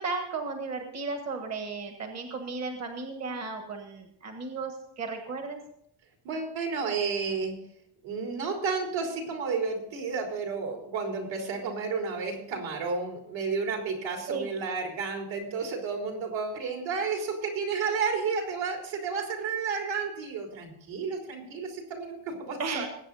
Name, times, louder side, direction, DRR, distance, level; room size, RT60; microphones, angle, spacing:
voice 1, 0.0-5.6 14.3-14.5 22.6-22.9, right 4 dB, 30° right, 5 dB, 1.5 m, -34 dB
voice 2, 6.2-7.6 8.0-22.9, right 5 dB, 65° right, 1 dB, 4.0 m, -31 dB
20.5 x 8.8 x 4.1 m, 0.72 s
cardioid pair, 165°, 49 cm